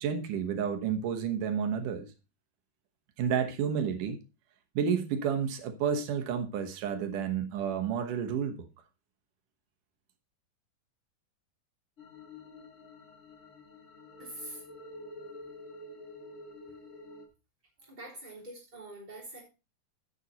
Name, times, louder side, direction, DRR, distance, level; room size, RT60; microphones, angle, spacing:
voice 1, 0.0-2.1 3.2-4.2 4.8-8.6, right 7 dB, 70° right, 2.6 m, -30 dB
sound 1, 12.0-17.2, left 2 dB, 40° left, 1.0 m, -48 dB
voice 2, 14.2-14.6 17.8-19.4, right 1 dB, 10° right, 3.2 m, -44 dB
9.6 x 7.8 x 4.1 m
omnidirectional pair, 4.0 m